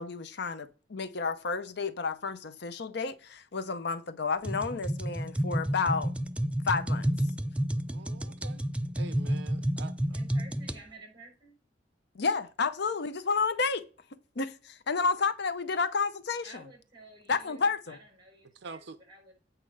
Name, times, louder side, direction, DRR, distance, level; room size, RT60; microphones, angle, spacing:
voice 1, 0.0-6.1 6.6-7.0 12.1-13.8 14.4-16.5 17.3-18.0, left 4 dB, 60° left, 0.7 m, -31 dB
sound 1, 4.4-10.8, equal, 5° right, 0.4 m, -30 dB
voice 2, 7.9-8.6 9.0-9.9 18.6-19.0, right 4 dB, 65° right, 0.5 m, -45 dB
voice 3, 10.1-11.6 16.4-19.3, right 2 dB, 25° right, 5.2 m, -53 dB
8.4 x 4.4 x 6.3 m
head